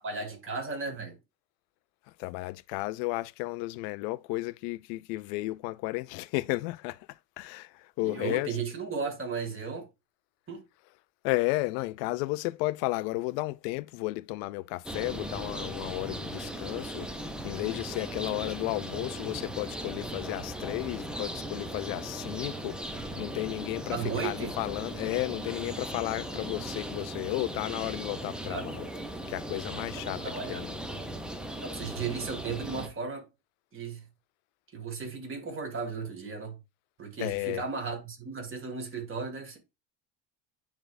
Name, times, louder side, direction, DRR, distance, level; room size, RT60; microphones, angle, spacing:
voice 1, 0.0-1.2 8.0-9.9 10.5-10.6 23.9-24.6 28.5-28.7 30.0-30.7 31.6-33.2 33.7-34.0 34.7-36.6 37.0-39.6, right 5 dB, 25° right, 2.1 m, -35 dB
voice 2, 2.2-7.0 7.4-7.7 8.0-8.6 11.2-17.1 17.4-22.8 23.2-28.9 29.3-30.2 30.5-30.7 37.2-37.6, left 21 dB, 80° left, 0.6 m, -33 dB
sound 1, 14.8-32.9, right 1 dB, ahead, 0.6 m, -38 dB
10.0 x 3.6 x 2.5 m
supercardioid pair, 125°, 50 cm